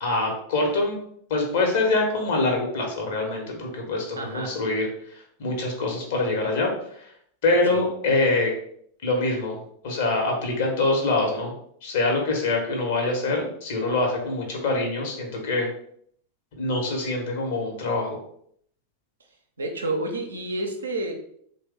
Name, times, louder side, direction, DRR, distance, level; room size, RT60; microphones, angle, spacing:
voice 1, 0.0-1.0 1.3-7.1 7.4-8.5 9.0-9.6 9.8-11.5 11.8-15.7 16.5-18.2, left 2 dB, 55° left, 1 dB, 1.0 m, -25 dB
voice 2, 4.2-4.6 7.7-7.8 19.6-21.1, right 2 dB, 75° right, 3 dB, 0.6 m, -29 dB
3.2 x 2.2 x 3.5 m, 0.66 s
figure-of-eight pair, 90°, 0 cm